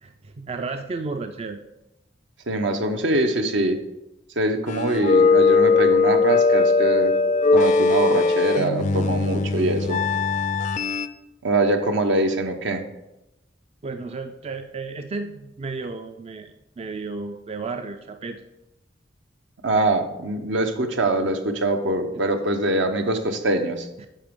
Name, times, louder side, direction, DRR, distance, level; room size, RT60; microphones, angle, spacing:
voice 1, 0.0-1.6 13.8-18.4 22.1-22.2 24.0-24.1, right 3 dB, 35° right, 7 dB, 0.4 m, -33 dB
voice 2, 2.5-3.8 4.4-7.1 7.5-10.0 11.4-12.8 19.6-23.9, right 2 dB, 75° right, 6 dB, 0.9 m, -23 dB
sound 1, 4.7-11.1, left 4 dB, 40° left, 0.4 m, -20 dB
10.0 x 5.9 x 3.7 m, 0.92 s
head